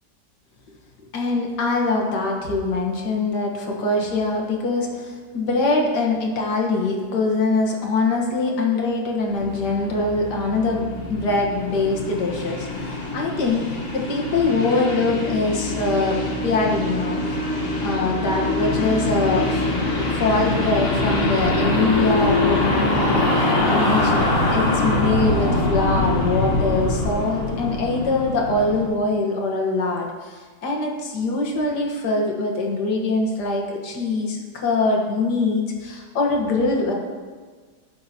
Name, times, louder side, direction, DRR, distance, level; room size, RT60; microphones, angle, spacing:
voice 1, 1.1-17.4 17.8-19.7 20.1-36.9, left 3 dB, 90° left, 0 dB, 1.9 m, -23 dB
sound 1, 9.3-28.9, left 2 dB, 40° left, 1.5 m, -23 dB
14.5 x 6.6 x 2.8 m, 1.5 s
omnidirectional pair, 1.7 m